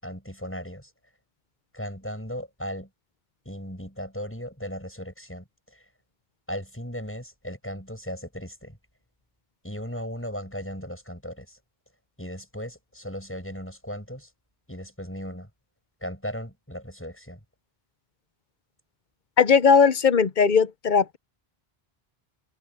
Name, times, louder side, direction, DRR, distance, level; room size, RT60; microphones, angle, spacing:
voice 1, 0.0-0.9 1.7-2.9 3.5-5.8 6.5-8.8 9.6-11.6 12.2-14.3 14.7-15.5 16.0-17.4, equal, 10° left, 7.2 m, -37 dB
voice 2, 19.4-21.2, left 6 dB, 50° left, 0.9 m, -18 dB
omnidirectional pair, 1.0 m